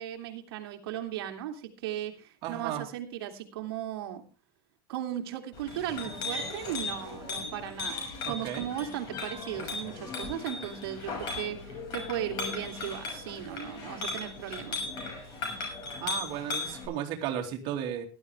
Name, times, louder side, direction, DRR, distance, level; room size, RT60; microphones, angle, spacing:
voice 1, 0.0-4.2 4.9-14.8, right 11 dB, 85° right, 3 dB, 2.7 m, -37 dB
voice 2, 2.4-2.9 8.2-8.7 16.0-18.0, right 10 dB, 40° right, 2 dB, 2.6 m, -34 dB
Chink clink, 5.5-16.9, left 3 dB, 35° left, 6.3 m, -37 dB
17.5 x 12.0 x 3.5 m, 0.30 s
supercardioid pair, 175°, 12 cm